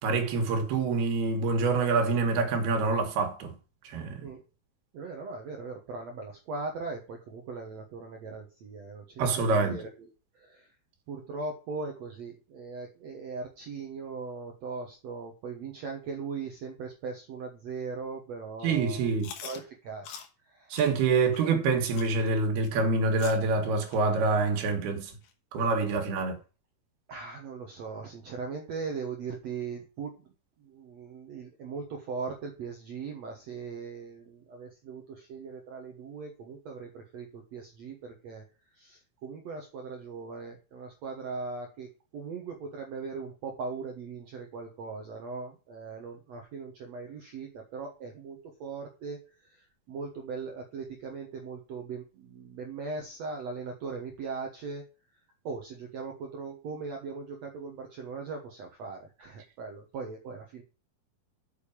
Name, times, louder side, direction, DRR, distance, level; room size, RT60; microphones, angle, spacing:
voice 1, 0.0-3.6 3.9-4.3 9.2-9.8 18.6-19.3 20.7-25.1 25.5-26.4, right 4 dB, 80° right, 3.6 m, -26 dB
voice 2, 4.9-9.9 10.3-10.7 11.1-19.1 19.4-20.8 27.1-30.2 30.6-38.4 38.7-41.9 42.1-54.9 55.4-60.6, right 4 dB, 60° right, 1.8 m, -39 dB
Chewing mastication, 19.2-19.6 20.0-20.3 20.7-20.9 21.3-21.5 21.9-22.1 22.6-22.7 23.2-23.4 23.9-24.0 24.6-24.7 25.2-25.3 25.9-26.0, left 8 dB, 75° left, 3.3 m, -43 dB
6.8 x 6.7 x 7.1 m
omnidirectional pair, 4.4 m